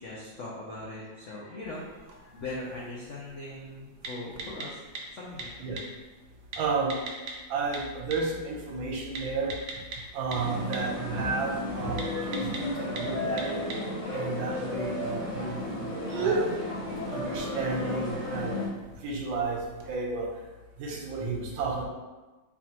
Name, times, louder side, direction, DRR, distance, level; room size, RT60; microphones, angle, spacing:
voice 1, 0.0-4.8 5.1-5.7, left 2 dB, 75° left, -5 dB, 0.7 m, -40 dB
sound 1, 1.7-19.9, right 3 dB, 65° right, 1.1 m, -40 dB
voice 2, 6.6-6.9 7.5-9.5 10.1-13.6 14.1-16.5 17.0-18.6 19.0-19.6 19.9-20.3 20.8-21.8, right 4 dB, 80° right, -1 dB, 1.5 m, -32 dB
sound 2, 10.3-18.7, left 2 dB, 40° left, 1.3 m, -34 dB
4.2 x 3.4 x 2.9 m, 1.2 s
omnidirectional pair, 2.1 m